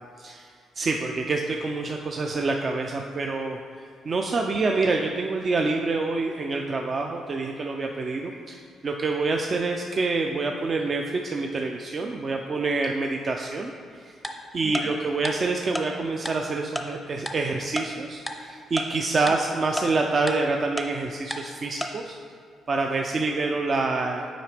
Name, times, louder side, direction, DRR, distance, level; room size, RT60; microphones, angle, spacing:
voice 1, 0.2-0.5 0.8-13.7 14.0-14.2 14.5-22.2 22.7-24.3, right 3 dB, 40° right, 2 dB, 0.4 m, -27 dB
Tick-tock, 14.2-14.3 14.7-14.8 15.2-15.3 15.7-15.8 16.3-16.4 16.8-16.9 17.3-17.4 17.8-17.9 18.3-18.4 18.8-18.9 19.3-19.4 19.8-19.9 20.3-20.4 20.8-20.9 21.3-21.4 21.8-21.9, left 1 dB, ahead, 0.6 m, -30 dB
7.6 x 4.9 x 3.4 m, 2.3 s
cardioid pair, 90°, 0 cm